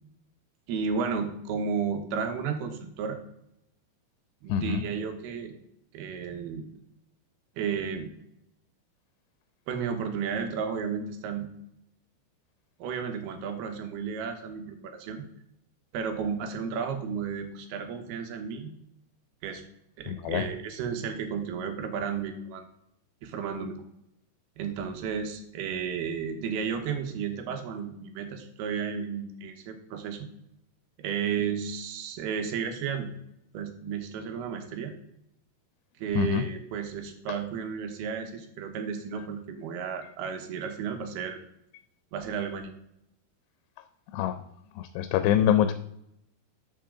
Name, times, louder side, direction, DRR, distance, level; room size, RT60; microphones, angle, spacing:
voice 1, 0.7-3.2 4.4-5.5 5.9-6.7 7.6-8.1 9.7-11.5 12.8-15.2 15.9-18.7 19.4-19.6 20.0-22.6 23.2-23.8 24.6-30.3 31.0-33.1 33.5-34.9 36.0-41.4 42.1-42.7, right 6 dB, 80° right, 6 dB, 2.9 m, -33 dB
voice 2, 4.5-4.8 20.1-20.5 36.2-36.5 37.3-37.4 44.1-44.4 44.8-45.7, left 10 dB, 85° left, 10 dB, 2.7 m, -25 dB
12.5 x 6.1 x 3.7 m, 0.79 s
omnidirectional pair, 4.7 m